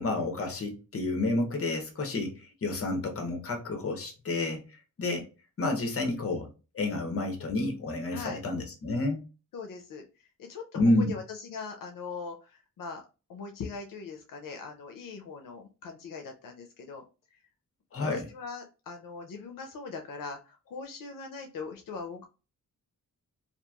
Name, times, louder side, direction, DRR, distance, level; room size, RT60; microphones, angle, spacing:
voice 1, 0.0-4.6 5.0-5.3 5.6-6.5 6.7-9.2 10.7-11.2 17.9-18.3, left 2 dB, 45° left, 0.7 m, -29 dB
voice 2, 8.1-8.4 9.5-10.0 10.4-13.0 13.3-17.0 18.0-22.2, left 4 dB, 80° left, 0.5 m, -41 dB
2.9 x 2.4 x 2.3 m
wide cardioid pair, 135°, 32 cm